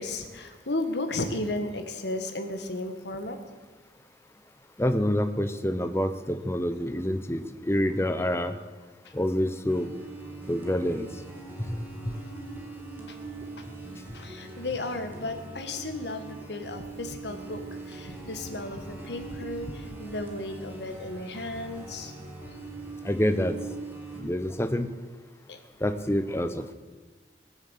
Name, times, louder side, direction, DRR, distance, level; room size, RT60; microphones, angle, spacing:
voice 1, 0.0-3.4 13.1-13.2 14.1-22.1 25.5-25.6, left 2 dB, 75° left, 7 dB, 1.6 m, -34 dB
voice 2, 4.8-8.5 9.1-9.9 10.5-11.1 11.7-12.2 23.0-23.6 24.2-24.9 25.8-26.7, left 1 dB, 15° left, 10 dB, 0.7 m, -27 dB
sound 1, 9.7-24.2, right 3 dB, 10° right, 2.0 m, -42 dB
19.0 x 7.2 x 8.3 m, 1.4 s
head